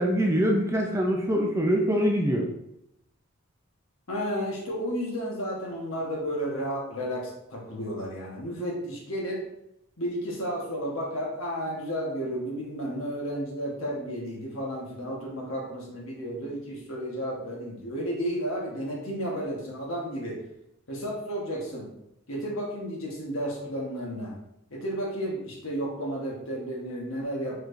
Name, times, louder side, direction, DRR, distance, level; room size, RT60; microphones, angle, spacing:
voice 1, 0.0-2.4, equal, 15° right, 0 dB, 0.4 m, -24 dB
voice 2, 4.1-9.4 10.0-20.4 20.9-21.9 22.3-24.3 24.7-27.6, equal, 70° left, -2 dB, 1.3 m, -32 dB
4.7 x 4.3 x 2.6 m, 0.80 s
head